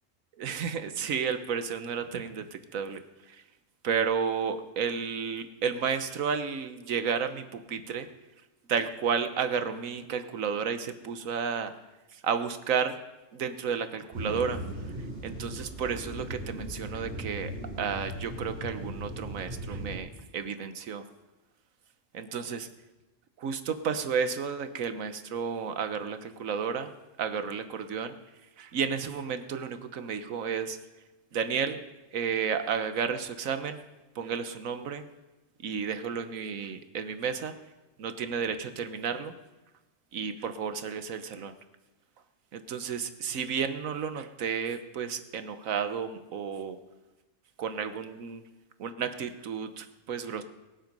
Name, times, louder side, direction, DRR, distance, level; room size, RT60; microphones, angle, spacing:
voice 1, 0.4-2.4 2.7-3.0 3.8-8.1 8.7-11.7 12.2-13.0 13.3-14.6 15.2-17.5 17.8-20.1 20.3-21.0 22.1-22.7 23.4-26.9 27.2-28.1 28.6-30.8 31.3-31.8 32.1-33.8 34.2-35.0 35.6-37.5 38.0-39.3 40.1-41.5 42.5-46.8 47.6-48.4 48.8-50.4, right 6 dB, 90° right, 10 dB, 1.4 m, -32 dB
sound 1, 14.1-20.0, right 1 dB, 40° right, 5.9 m, -38 dB
23.0 x 7.8 x 5.4 m, 1.1 s
omnidirectional pair, 1.4 m